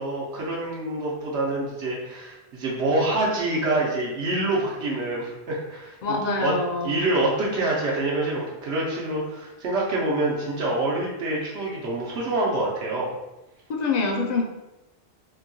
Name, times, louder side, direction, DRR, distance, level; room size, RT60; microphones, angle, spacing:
voice 1, 0.0-6.5 6.8-13.1, right 2 dB, 90° right, -4 dB, 1.0 m, -26 dB
voice 2, 6.0-7.1 13.7-14.4, left 3 dB, 55° left, 1 dB, 0.5 m, -25 dB
2.9 x 2.6 x 2.6 m, 0.96 s
omnidirectional pair, 1.1 m